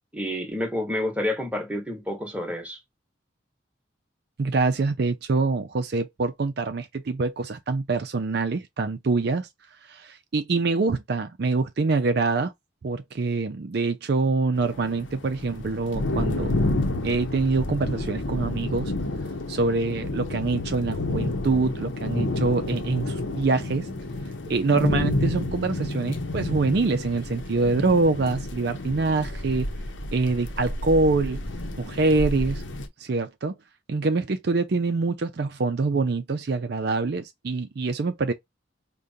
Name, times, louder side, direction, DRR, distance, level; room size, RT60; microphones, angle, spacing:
voice 1, 0.1-2.8, left 1 dB, 5° right, 1.1 m, -29 dB
voice 2, 4.4-9.5 9.8-12.5 12.8-16.6 17.0-18.9 19.5-23.9 24.5-29.7 30.1-31.4 31.8-32.6 33.0-33.5 33.9-38.3, right 3 dB, 55° right, 0.5 m, -25 dB
sound 1, 14.5-32.9, left 2 dB, 75° left, 0.8 m, -30 dB
5.0 x 2.2 x 2.7 m
head